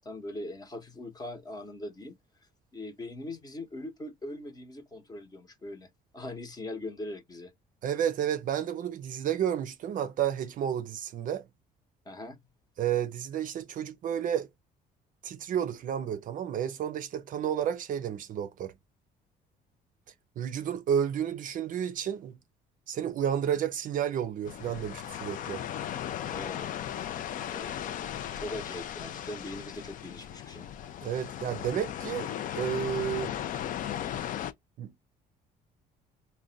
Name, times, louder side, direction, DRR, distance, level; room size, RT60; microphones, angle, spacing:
voice 1, 0.0-2.2 2.7-7.5 12.0-12.4 26.3-27.1 27.5-30.7, left 1 dB, 25° left, 0.8 m, -41 dB
voice 2, 7.8-11.4 12.8-14.5 15.2-18.7 20.4-22.4 22.9-25.6 31.0-33.3 34.8-35.0, right 9 dB, 50° right, 0.5 m, -31 dB
sound 1, 24.5-34.5, left 10 dB, 50° left, 0.4 m, -36 dB
2.4 x 2.2 x 3.8 m
cardioid pair, 110°, 17 cm